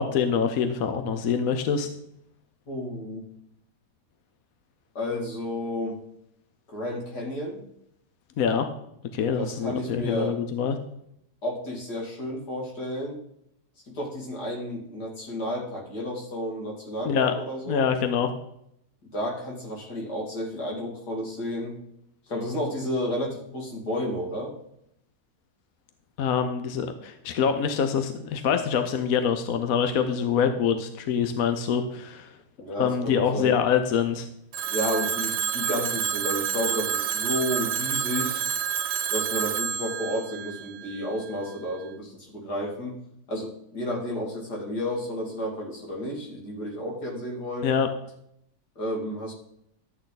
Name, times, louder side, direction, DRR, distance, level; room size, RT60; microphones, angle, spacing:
voice 1, 0.0-1.9 8.4-8.7 9.1-10.8 17.1-17.3 17.7-18.3 26.2-32.3 32.8-34.3 47.6-47.9, left 7 dB, 65° left, 7 dB, 1.2 m, -25 dB
voice 2, 2.7-3.2 4.9-6.0 6.7-7.6 9.3-10.4 11.4-13.2 13.9-17.8 19.1-21.8 22.3-24.5 32.6-33.5 34.7-38.5 39.1-43.0 43.3-47.7 48.8-49.3, left 1 dB, 85° left, -1 dB, 3.2 m, -31 dB
Telephone, 34.5-41.4, right 8 dB, 90° right, 1.3 m, -29 dB
12.5 x 8.8 x 4.0 m, 0.75 s
omnidirectional pair, 1.7 m